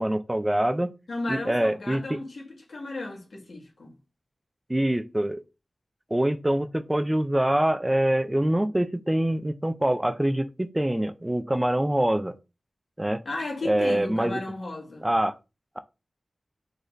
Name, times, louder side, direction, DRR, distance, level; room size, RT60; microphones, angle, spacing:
voice 1, 0.0-0.9 1.3-2.2 4.7-5.4 6.1-12.3 13.0-13.2 13.6-14.4 15.0-15.3, right 1 dB, 15° right, 0.5 m, -25 dB
voice 2, 1.1-3.9 13.3-15.1, left 2 dB, 75° left, 1.8 m, -34 dB
4.9 x 3.9 x 2.6 m
wide cardioid pair, 75°, 0 cm